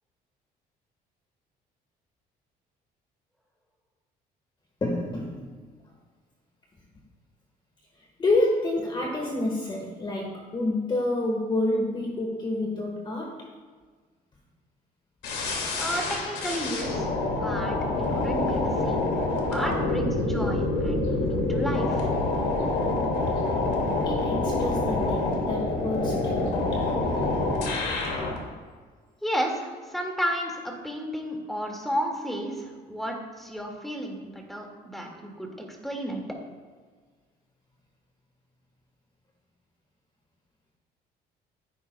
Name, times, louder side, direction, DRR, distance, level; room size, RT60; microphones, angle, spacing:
voice 1, 4.8-5.5 8.2-13.5 18.8-18.9 24.0-26.9, left 2 dB, 25° left, 0 dB, 1.5 m, -28 dB
sound 1, 15.2-28.4, left 2 dB, 80° left, 2.3 m, -26 dB
voice 2, 15.8-19.0 19.5-22.0 29.2-35.5 35.8-36.2, equal, ahead, 0 dB, 2.1 m, -32 dB
15.0 x 9.1 x 2.3 m, 1.5 s
cardioid pair, 110°, 17 cm